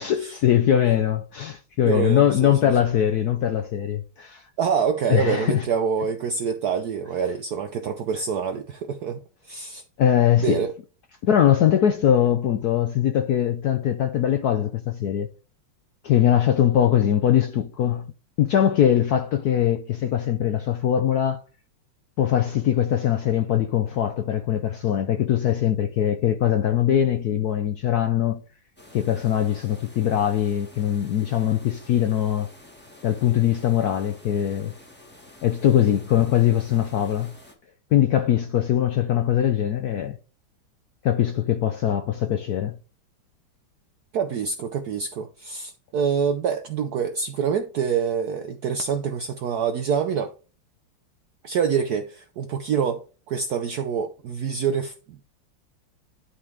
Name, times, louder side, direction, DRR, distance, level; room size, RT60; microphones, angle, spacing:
voice 1, 0.0-4.4 5.1-5.6 10.0-10.6 11.2-15.3 16.0-18.1 18.4-21.4 22.2-28.4 28.9-32.5 33.0-34.7 35.4-37.3 37.9-40.2 41.0-42.7, left 10 dB, 85° left, 0.8 m, -21 dB
voice 2, 1.8-2.7 4.6-9.8 10.4-10.7 44.1-50.3 51.4-55.3, right 7 dB, 85° right, 0.8 m, -26 dB
sound 1, 28.8-37.5, left 1 dB, 5° left, 1.1 m, -49 dB
11.0 x 4.3 x 3.5 m
omnidirectional pair, 2.4 m